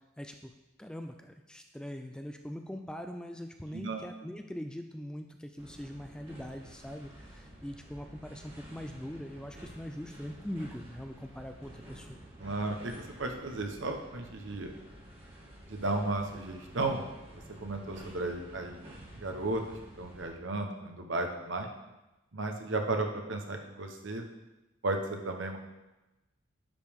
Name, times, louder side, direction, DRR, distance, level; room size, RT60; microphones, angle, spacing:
voice 1, 0.2-0.5 0.8-12.2, equal, 5° left, 5 dB, 0.3 m, -42 dB
voice 2, 3.7-4.1 12.4-14.7 15.7-17.0 17.3-18.8 19.1-21.7 22.3-24.2 24.8-25.6, right 2 dB, 70° right, 4 dB, 1.0 m, -34 dB
sound 1, 5.6-20.3, right 1 dB, 30° right, 2.4 m, -50 dB
10.5 x 5.2 x 3.5 m, 1.0 s
head